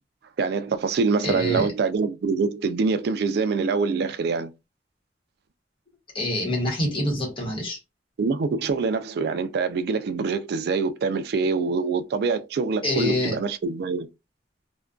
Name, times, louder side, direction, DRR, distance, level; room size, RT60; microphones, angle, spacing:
voice 1, 0.4-4.5 8.2-14.1, right 4 dB, 60° right, 0.3 m, -25 dB
voice 2, 1.2-1.7 6.1-7.8 12.8-13.4, left 1 dB, 30° left, 0.9 m, -26 dB
2.4 x 2.2 x 2.3 m
head